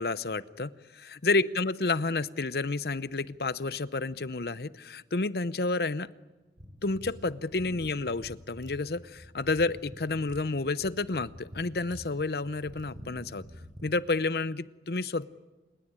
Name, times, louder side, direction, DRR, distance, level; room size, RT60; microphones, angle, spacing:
voice 1, 0.0-6.1 6.8-13.4 13.8-15.3, left 3 dB, 65° left, 16 dB, 0.8 m, -30 dB
sound 1, 6.6-13.9, equal, 45° right, 5.2 m, -47 dB
28.5 x 17.5 x 9.7 m, 1.2 s
head